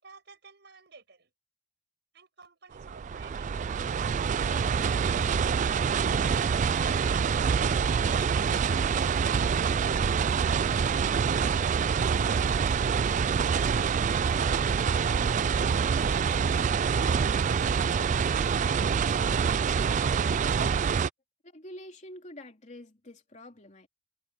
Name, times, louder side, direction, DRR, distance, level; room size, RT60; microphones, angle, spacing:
voice 1, 0.0-1.3 2.1-5.4, right 5 dB, 65° right, 7.7 m, -53 dB
sound 1, 2.7-21.1, right 6 dB, 40° right, 0.3 m, -26 dB
voice 2, 21.4-23.9, left 1 dB, 40° left, 3.1 m, -46 dB
head